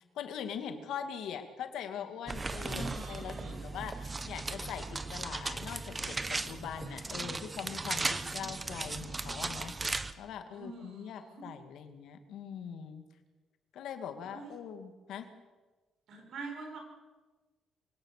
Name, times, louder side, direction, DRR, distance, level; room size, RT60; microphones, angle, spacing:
voice 1, 0.1-9.7 10.2-13.0 13.7-15.3, left 8 dB, 80° left, 7 dB, 2.3 m, -42 dB
sound 1, 2.3-10.1, right 3 dB, 25° right, 1.1 m, -37 dB
voice 2, 2.6-3.6 10.5-11.5 14.2-14.5 16.1-16.8, right 3 dB, 70° right, 3 dB, 6.8 m, -45 dB
24.5 x 17.5 x 6.7 m, 1.3 s
cardioid pair, 90°, 0 cm